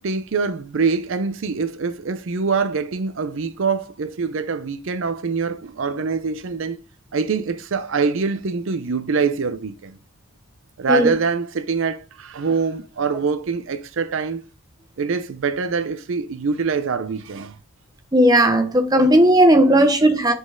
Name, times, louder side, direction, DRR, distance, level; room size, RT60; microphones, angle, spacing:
voice 1, 0.0-6.8 7.1-10.0 10.8-14.4 15.0-17.6, right 5 dB, 60° right, 0.5 m, -24 dB
voice 2, 18.1-20.3, right 1 dB, 15° right, 0.7 m, -15 dB
7.1 x 4.1 x 3.6 m
head